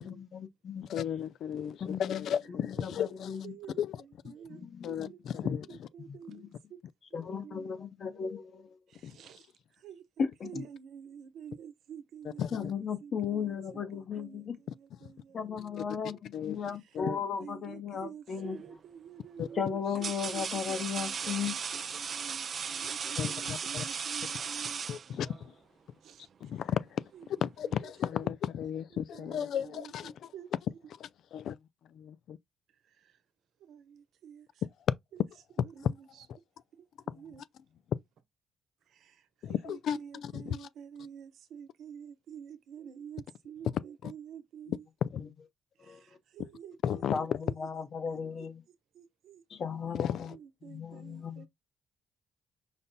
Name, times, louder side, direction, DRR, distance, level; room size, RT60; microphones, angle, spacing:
voice 1, 0.0-0.8 1.8-2.3 2.6-3.5 4.5-5.1 6.0-6.4 7.1-8.8 10.2-10.6 12.5-14.6 15.3-18.6 19.6-21.6 45.1-45.3 45.8-46.0 47.1-47.3 47.6-48.6 49.5-50.3 50.6-51.5, left 6 dB, 55° left, 1.0 m, -36 dB
voice 2, 0.9-3.4 3.8-4.0 4.8-5.6 9.0-9.2 12.4-12.7 15.0-15.1 16.3-16.6 16.9-17.2 19.4-19.5 23.2-23.8 24.9-25.5 26.4-27.1 27.4-30.1 31.0-31.6 31.9-32.4 35.8-35.9 37.1-37.2 37.9-38.0 39.4-40.7 44.0-44.1 45.0-45.1 46.8-47.2 50.0-50.4, left 9 dB, 70° left, 0.3 m, -34 dB
voice 3, 2.8-3.1 3.4-6.8 7.1-7.7 8.9-12.7 13.0-15.5 16.8-16.9 17.4-24.8 26.0-26.6 27.1-27.9 28.9-30.5 32.7-33.2 33.6-34.6 35.1-35.2 35.6-36.2 36.7-36.9 37.1-37.4 38.9-44.9 45.8-47.7 48.1-51.5, right 8 dB, 75° right, 0.9 m, -49 dB
sound 1, 18.4-18.7 19.5-25.5, right 6 dB, 50° right, 0.5 m, -37 dB
5.2 x 2.2 x 4.0 m
cardioid pair, 90°, 0 cm